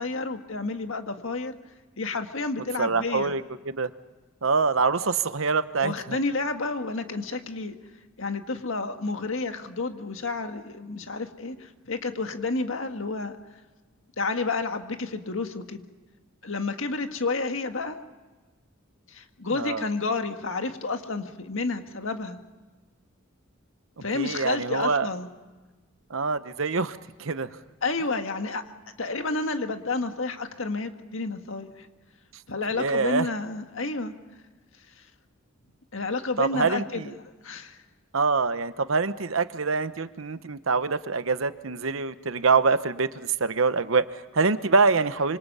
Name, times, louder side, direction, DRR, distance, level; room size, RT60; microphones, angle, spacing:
voice 1, 0.0-1.6 2.0-3.4 5.8-7.8 8.2-13.4 14.2-15.9 16.4-18.0 19.1-22.4 24.0-25.3 27.8-28.6 29.0-31.9 32.5-34.1 35.9-37.1 37.4-37.8, left 3 dB, 70° left, 6 dB, 1.8 m, -30 dB
voice 2, 2.8-3.9 4.4-6.2 19.5-19.8 24.1-25.1 26.1-27.5 32.8-33.3 36.4-37.1 38.1-45.4, right 4 dB, 70° right, 12 dB, 1.0 m, -25 dB
26.5 x 25.5 x 5.6 m, 1.3 s
head